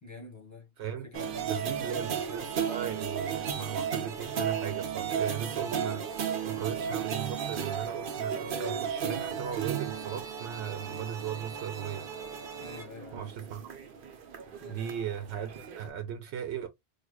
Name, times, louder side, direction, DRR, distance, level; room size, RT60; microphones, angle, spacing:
voice 1, 0.0-0.7 1.0-2.2 12.6-13.3 14.6-14.8, left 4 dB, 15° left, 1.4 m, -47 dB
sound 1, 1.1-15.9, right 7 dB, 55° right, 0.8 m, -34 dB
voice 2, 1.5-12.1 12.4-12.6 13.1-13.7 14.7-15.5 15.7-16.7, right 9 dB, 85° right, 0.9 m, -37 dB
4.6 x 2.4 x 2.2 m
omnidirectional pair, 1.1 m